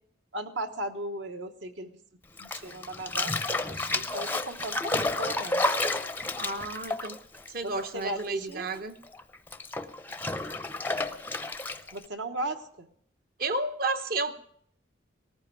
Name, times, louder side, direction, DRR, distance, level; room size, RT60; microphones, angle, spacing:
voice 1, 0.3-1.9 2.4-5.6 7.6-8.7 11.9-12.9, right 1 dB, 65° right, 7 dB, 1.2 m, -37 dB
Bathtub (filling or washing), 2.4-8.2 8.5-12.0, left 2 dB, 10° left, 0.5 m, -31 dB
voice 2, 6.3-7.2 7.5-8.9 13.4-14.3, right 3 dB, 50° right, 9 dB, 0.9 m, -31 dB
18.5 x 14.5 x 4.8 m, 0.65 s
head